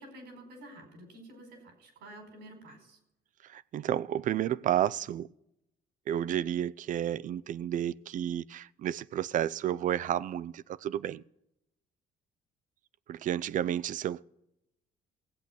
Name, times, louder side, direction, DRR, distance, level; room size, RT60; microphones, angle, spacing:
voice 1, 0.0-3.0, right 1 dB, 80° right, 4.8 m, -50 dB
voice 2, 3.4-5.3 6.1-11.2 13.1-14.2, right 11 dB, 50° right, 0.4 m, -31 dB
15.5 x 8.4 x 6.0 m
cardioid pair, 110°, 17 cm